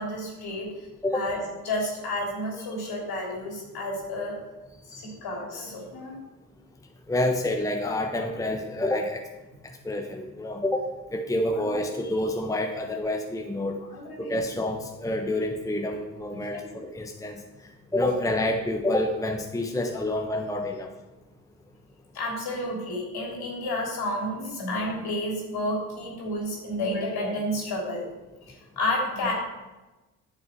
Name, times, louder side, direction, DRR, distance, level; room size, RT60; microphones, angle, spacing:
voice 1, 0.0-0.9 1.1-1.4 1.6-4.4 4.9-6.1 11.5-11.9 13.9-14.4 16.3-16.6 22.1-28.1 28.5-29.3, left 1 dB, 55° left, -1 dB, 3.3 m, -31 dB
voice 2, 7.1-9.2 9.8-13.8 14.2-17.4 17.9-20.9, left 1 dB, 5° left, 3 dB, 1.0 m, -28 dB
10.5 x 6.4 x 4.5 m, 1.1 s
hypercardioid pair, 50°, 44 cm